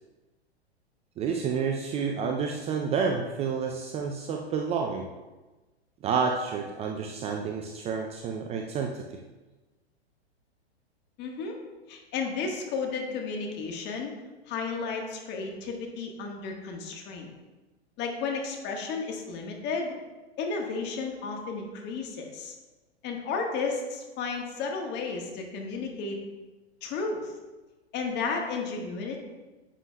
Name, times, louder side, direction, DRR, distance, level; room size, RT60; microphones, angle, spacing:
voice 1, 1.2-5.1 6.0-9.0, right 5 dB, 20° right, 3 dB, 0.4 m, -29 dB
voice 2, 11.2-11.6 11.9-14.1 14.5-17.3 18.0-19.9 20.4-22.5 23.0-26.2 26.8-27.3 27.9-29.2, left 4 dB, 35° left, 2 dB, 1.4 m, -33 dB
9.9 x 7.6 x 2.3 m, 1.2 s
hypercardioid pair, 110°, 33 cm